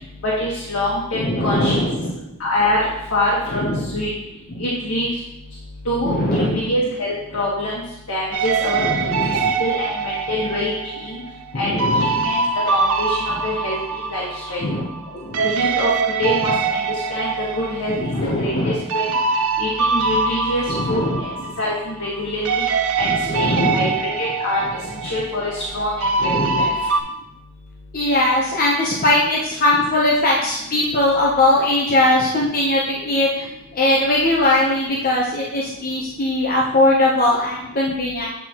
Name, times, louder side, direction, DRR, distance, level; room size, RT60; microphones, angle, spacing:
voice 1, 0.2-1.8 2.4-2.8 3.1-4.1 4.6-5.1 5.8-7.8 8.1-8.8 9.2-11.2 11.5-12.4 12.7-14.6 15.4-18.1 18.4-19.0 19.6-21.3 21.6-22.6 23.0-24.6 25.0-26.1 26.4-26.7, left 1 dB, 80° left, -6 dB, 1.4 m, -25 dB
voice 2, 1.1-2.1 3.5-3.9 4.6-4.7 6.0-6.6 8.8-9.5 11.5-12.2 14.6-14.8 15.1-15.4 18.0-18.8 20.7-21.2 23.0-23.9 26.2-26.7 27.9-33.5 33.7-38.3, left 1 dB, 40° left, -4 dB, 0.7 m, -20 dB
sound 1, 8.3-15.1 15.3-22.2 22.4-27.0, right 4 dB, 90° right, 0.6 m, -23 dB
9.0 x 4.1 x 2.9 m, 0.88 s
head